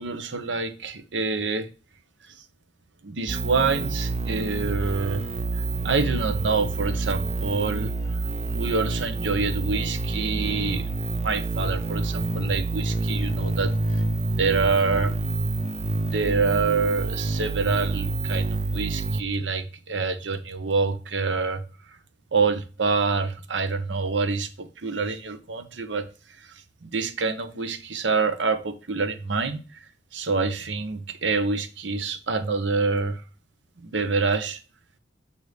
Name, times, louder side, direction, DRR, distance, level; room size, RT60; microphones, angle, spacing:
voice 1, 0.0-1.7 3.0-5.3 5.8-7.9 8.5-10.9 11.2-13.7 14.3-15.1 15.9-21.6 22.3-26.1 26.8-29.6 30.1-33.2 33.8-34.6, right 4 dB, 85° right, 0.8 m, -26 dB
sound 1, 3.3-19.2, right 3 dB, 35° right, 0.5 m, -28 dB
8.0 x 2.7 x 4.9 m
head